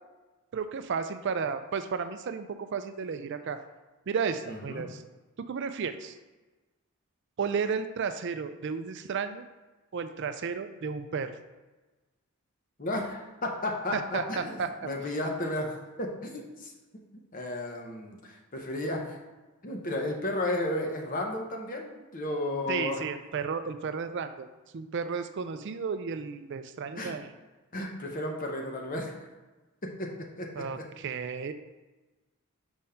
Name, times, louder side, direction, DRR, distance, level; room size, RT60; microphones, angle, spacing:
voice 1, 0.5-3.6 4.1-5.0 5.4-6.1 7.4-9.4 9.9-11.4 13.9-14.7 22.7-24.5 24.7-27.3 30.6-31.5, right 5 dB, 55° right, 9 dB, 0.4 m, -33 dB
voice 2, 4.5-4.8 12.8-16.7 17.3-19.2 19.6-23.0 27.0-27.2 27.7-29.2 29.8-30.1 30.4-30.8, left 1 dB, 40° left, 1 dB, 0.9 m, -33 dB
5.2 x 3.6 x 5.6 m, 1.2 s
head